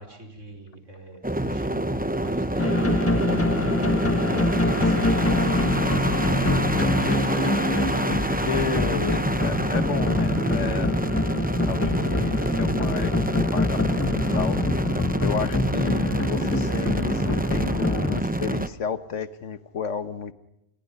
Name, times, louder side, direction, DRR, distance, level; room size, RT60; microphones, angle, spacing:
voice 1, 0.0-6.6 9.3-9.7 15.8-16.1, equal, 80° right, 5.5 m, -42 dB
sound 1, 1.2-18.7, right 1 dB, 10° right, 0.8 m, -27 dB
sound 2, 2.6-18.2, left 2 dB, 10° left, 1.2 m, -25 dB
voice 2, 6.2-7.5 8.3-11.0 11.6-14.7 15.2-20.3, left 6 dB, 75° left, 1.6 m, -32 dB
30.0 x 29.5 x 5.5 m
omnidirectional pair, 1.3 m